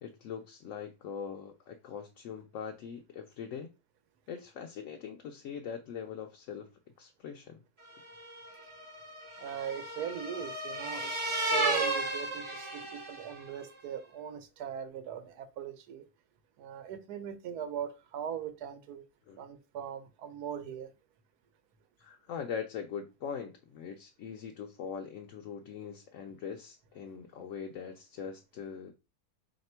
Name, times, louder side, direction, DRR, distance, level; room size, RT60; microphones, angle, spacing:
voice 1, 0.0-3.7 4.3-6.7 7.0-7.6 19.3-19.4 22.0-28.9, left 7 dB, 70° left, 4 dB, 0.8 m, -42 dB
sound 1, 8.1-13.5, right 2 dB, 40° right, 0.4 m, -34 dB
voice 2, 9.4-16.0 16.6-19.0 19.4-20.9, right 9 dB, 80° right, 9 dB, 1.2 m, -40 dB
3.3 x 2.9 x 4.3 m, 0.28 s
omnidirectional pair, 1.6 m